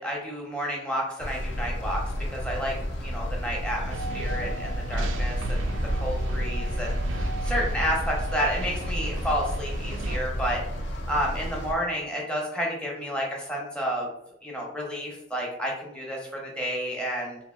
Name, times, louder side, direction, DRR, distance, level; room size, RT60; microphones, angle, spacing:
voice 1, 0.0-2.0 2.3-2.7 3.0-10.6 11.1-14.1 14.4-17.4, equal, 5° left, -2 dB, 0.6 m, -31 dB
sound 1, 1.2-11.7, equal, 70° left, 0.4 m, -32 dB
sound 2, 3.9-10.2, right 1 dB, 75° right, 0.3 m, -33 dB
2.7 x 2.7 x 2.2 m, 0.81 s
head